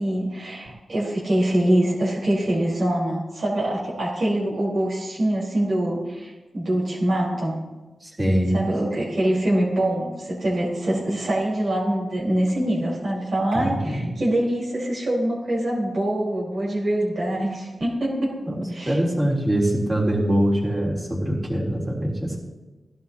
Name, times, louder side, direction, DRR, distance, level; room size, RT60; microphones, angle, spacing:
voice 1, 0.0-7.5 8.5-18.4 18.7-19.0, right 1 dB, 60° right, -6 dB, 4.6 m, -24 dB
voice 2, 8.0-8.6 13.5-14.1 18.4-22.4, right 1 dB, 20° right, -3 dB, 3.6 m, -23 dB
16.5 x 11.0 x 2.9 m, 1.2 s
cardioid pair, 75°, 0 cm